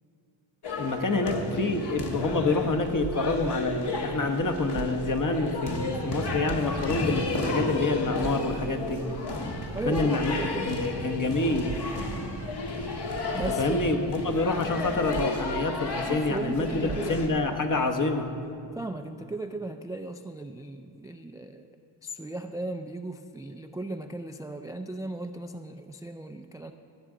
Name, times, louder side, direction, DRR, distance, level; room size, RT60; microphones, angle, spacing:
sound 1, 0.6-17.3, left 3 dB, 55° left, 1.5 m, -33 dB
voice 1, 0.8-9.0 9.8-10.4 10.6-11.8 13.6-18.3, left 3 dB, 40° left, 5 dB, 1.1 m, -27 dB
sound 2, 2.0-17.1, right 7 dB, 65° right, 0.9 m, -42 dB
voice 2, 9.7-10.9 13.3-14.1 16.1-17.2 18.7-21.7 22.0-26.7, right 2 dB, 10° right, 7 dB, 0.3 m, -36 dB
17.0 x 8.0 x 3.8 m, 2.7 s
cardioid pair, 70°, 47 cm